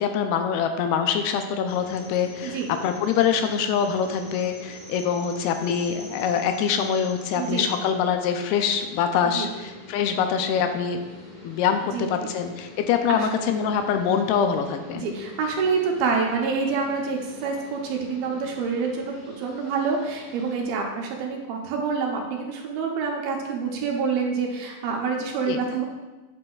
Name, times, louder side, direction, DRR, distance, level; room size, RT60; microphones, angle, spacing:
voice 1, 0.0-11.0 11.4-15.1 25.5-25.6, left 7 dB, 85° left, 6 dB, 2.4 m, -24 dB
sound 1, 1.7-20.6, left 2 dB, 35° left, 2.8 m, -45 dB
voice 2, 7.4-7.7 9.2-9.5 11.9-12.3 13.1-13.2 15.0-25.8, right 5 dB, 75° right, 0 dB, 2.6 m, -27 dB
9.3 x 7.7 x 2.3 m, 1.2 s
omnidirectional pair, 4.5 m